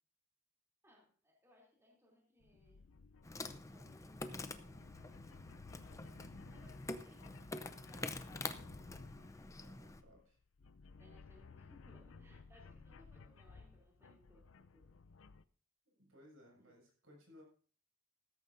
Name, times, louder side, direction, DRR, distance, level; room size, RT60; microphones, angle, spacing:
voice 1, 0.8-2.8 3.7-5.7 6.5-9.2 11.0-14.9 16.6-16.7, left 1 dB, 15° right, -2 dB, 3.0 m, -67 dB
sound 1, 2.4-15.4, left 4 dB, 75° left, 0.6 m, -57 dB
Insect, 3.2-10.0, left 2 dB, 15° left, 0.6 m, -47 dB
voice 2, 9.5-10.4 15.8-17.4, left 1 dB, 80° right, 0 dB, 6.6 m, -62 dB
15.5 x 13.5 x 2.7 m, 0.42 s
head